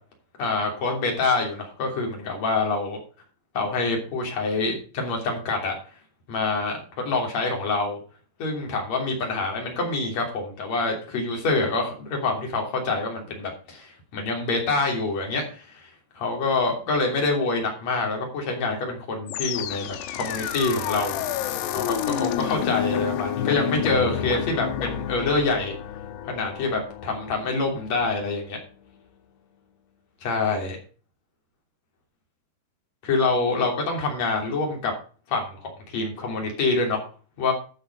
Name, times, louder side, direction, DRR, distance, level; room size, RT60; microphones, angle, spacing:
voice 1, 0.4-3.0 3.5-5.7 6.3-8.0 8.4-15.9 16.2-21.2 21.7-25.7 26.3-28.6 30.2-30.8 33.0-34.9 35.3-37.0 37.4-37.5, left 3 dB, 45° left, 1 dB, 4.0 m, -26 dB
sound 1, 19.3-28.4, left 11 dB, 80° left, 3.0 m, -30 dB
12.5 x 6.0 x 5.3 m, 0.39 s
omnidirectional pair, 4.8 m